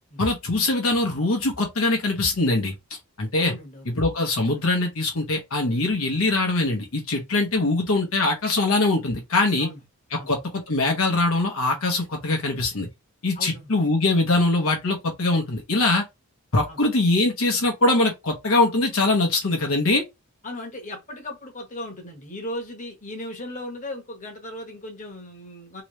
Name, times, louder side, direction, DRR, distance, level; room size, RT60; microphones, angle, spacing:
voice 1, 0.2-2.7 3.2-3.5 4.0-9.7 10.1-12.9 13.2-16.0 16.5-20.0, left 2 dB, 65° left, 0.9 m, -22 dB
voice 2, 3.4-4.1 9.6-9.8 10.1-10.3 13.3-13.8 16.7-16.8 20.4-25.8, left 1 dB, 35° left, 1.2 m, -37 dB
3.1 x 3.0 x 3.1 m
head